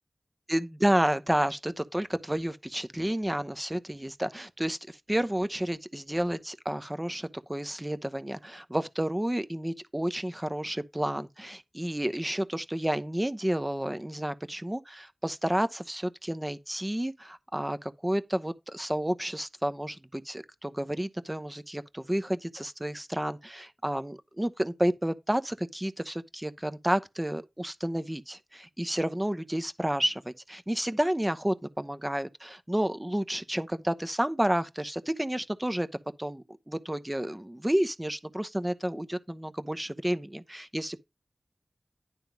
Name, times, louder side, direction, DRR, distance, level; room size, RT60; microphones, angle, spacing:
voice 1, 0.5-35.9 36.2-41.0, right 1 dB, 15° right, 0.8 m, -31 dB
10.5 x 3.6 x 5.9 m
wide cardioid pair, 60°, 0 cm